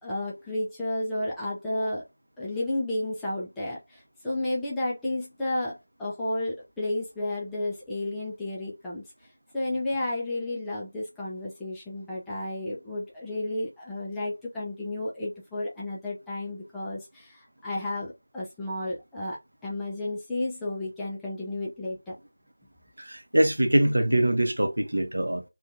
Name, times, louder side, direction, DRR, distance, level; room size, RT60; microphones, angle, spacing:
voice 1, 0.0-2.0 2.4-9.0 9.5-22.1, left 1 dB, 5° left, 0.4 m, -32 dB
voice 2, 23.0-25.4, right 1 dB, 60° right, 0.7 m, -23 dB
2.7 x 2.3 x 2.6 m
figure-of-eight pair, 170°, 0 cm